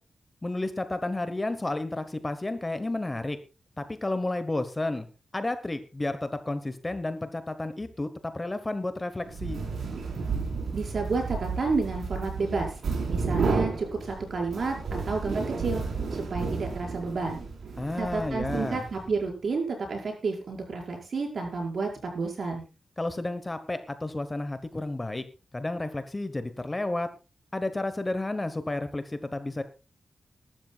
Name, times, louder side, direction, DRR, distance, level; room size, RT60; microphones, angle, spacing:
voice 1, 0.4-3.4 3.8-5.1 5.3-9.6 17.8-18.9 23.0-25.2 25.5-27.1 27.5-29.6, left 2 dB, 15° left, 10 dB, 1.1 m, -31 dB
sound 1, 9.2-19.2, right 4 dB, 80° right, 4.3 m, -32 dB
voice 2, 10.7-12.7 13.1-15.8 16.1-17.5 18.0-22.7, right 4 dB, 50° right, 2 dB, 5.5 m, -30 dB
21.5 x 12.5 x 2.4 m, 0.32 s
wide cardioid pair, 170°, 0 cm